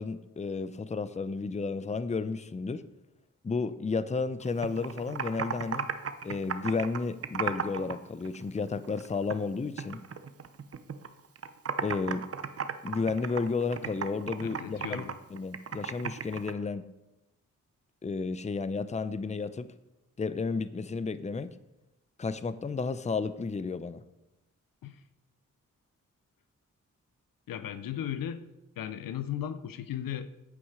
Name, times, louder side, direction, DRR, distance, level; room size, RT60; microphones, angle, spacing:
voice 1, 0.0-2.8 3.4-5.9 6.2-10.0 11.8-12.2 12.8-15.0 15.3-16.8 18.0-19.7 20.2-21.5 22.2-24.0, left 4 dB, 20° left, 14 dB, 0.6 m, -32 dB
Computer keyboard, 4.4-8.0 8.2-9.5 9.8-11.1 11.4-16.5, right 6 dB, 45° right, 0.8 m, -35 dB
voice 2, 14.4-15.2 24.8-25.0 27.5-28.5 28.8-30.3, left 10 dB, 85° left, 12 dB, 0.7 m, -36 dB
8.6 x 8.1 x 4.9 m, 0.96 s
cardioid pair, 60°, 33 cm